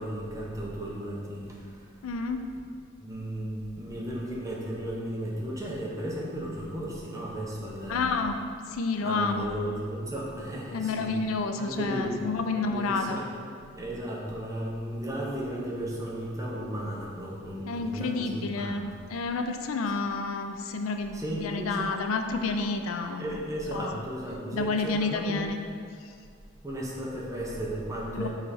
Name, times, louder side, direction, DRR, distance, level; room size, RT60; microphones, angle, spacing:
voice 1, 0.0-1.9 3.0-8.1 9.0-11.1 11.6-12.2 12.5-13.3 13.7-18.8 21.1-22.0 23.2-25.4 26.6-28.3, right 1 dB, 15° right, -4 dB, 0.9 m, -35 dB
voice 2, 2.0-2.4 7.9-9.5 10.7-13.2 17.7-23.4 23.7-24.0 24.5-25.6 28.1-28.3, left 4 dB, 75° left, 6 dB, 0.4 m, -30 dB
5.6 x 4.1 x 4.1 m, 2.2 s
head